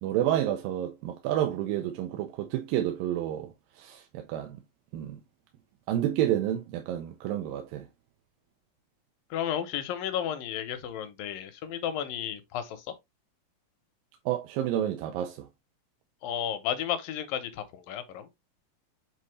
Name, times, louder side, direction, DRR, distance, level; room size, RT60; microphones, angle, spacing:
voice 1, 0.0-4.6 4.9-5.2 5.9-7.9 14.3-15.5, right 12 dB, 85° right, 2.5 m, -30 dB
voice 2, 9.3-12.8 16.2-18.3, left 10 dB, 80° left, 2.6 m, -33 dB
7.7 x 4.1 x 3.2 m
omnidirectional pair, 4.1 m